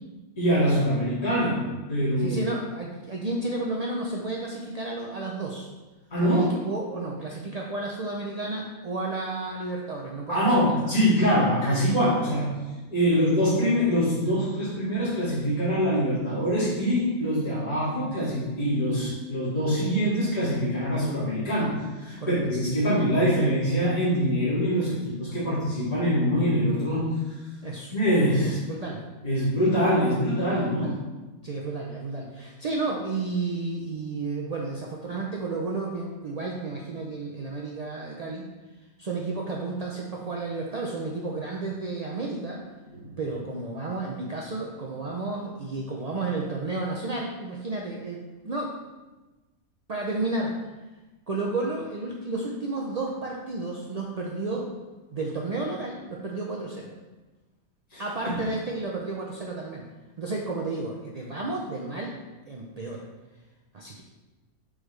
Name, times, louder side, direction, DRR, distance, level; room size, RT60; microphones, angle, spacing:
voice 1, 0.4-2.4 6.1-6.5 10.3-12.6 12.9-27.1 27.9-28.5 29.2-30.9 42.9-43.1 57.9-58.4, equal, 25° left, -11 dB, 2.3 m, -24 dB
voice 2, 2.2-5.7 6.2-10.8 13.1-13.2 22.2-22.3 27.6-27.9 28.4-29.0 30.6-30.9 31.4-38.5 39.0-42.6 43.2-48.7 49.9-50.6 51.3-54.7 55.1-56.9 58.0-59.8 60.2-62.1 62.5-63.0 63.7-64.0, right 3 dB, 60° right, -2 dB, 0.4 m, -32 dB
6.4 x 4.9 x 3.2 m, 1.2 s
omnidirectional pair, 1.5 m